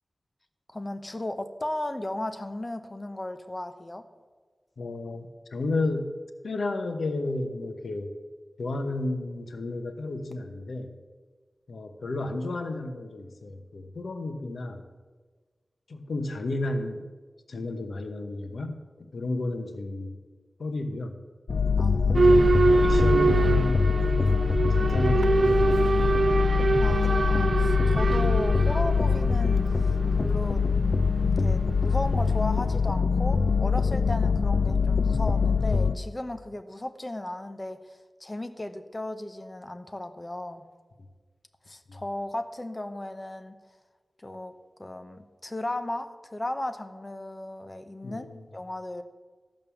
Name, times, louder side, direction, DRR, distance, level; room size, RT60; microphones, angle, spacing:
voice 1, 0.7-4.0 21.8-22.2 26.8-29.6 30.2-30.6 31.4-40.6 41.7-43.6 44.2-44.5 44.8-49.0, left 1 dB, 25° left, 8 dB, 0.8 m, -35 dB
voice 2, 4.8-6.2 6.4-8.1 8.6-10.9 11.7-14.9 15.9-17.1 17.5-20.2 20.6-21.2 22.1-24.2 24.7-26.3 41.9-42.0 48.0-48.5, left 2 dB, 90° left, 7 dB, 1.0 m, -32 dB
sound 1, 21.5-36.0, left 5 dB, 75° left, 0.4 m, -24 dB
Boat Water vehicle / Alarm, 22.1-32.8, right 3 dB, 65° right, 0.4 m, -25 dB
14.0 x 5.3 x 7.0 m, 1.4 s
wide cardioid pair, 95°, 0 cm